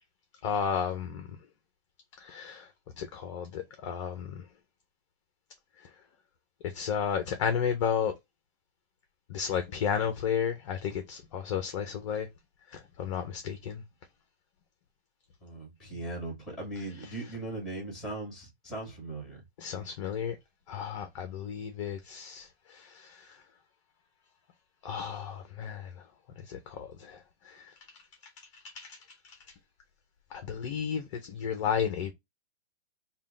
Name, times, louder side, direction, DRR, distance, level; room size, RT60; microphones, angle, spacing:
voice 1, 0.4-1.4 2.2-2.7 3.0-4.5 5.8-5.9 6.6-8.1 9.3-12.3 12.7-13.8 17.0-17.1 19.6-20.4 20.7-23.4 24.8-26.1 26.4-29.4 30.3-32.1, left 7 dB, 30° left, 0.5 m, -33 dB
voice 2, 15.4-19.4, right 2 dB, ahead, 1.8 m, -39 dB
3.6 x 2.2 x 3.6 m
hypercardioid pair, 160°, 31 cm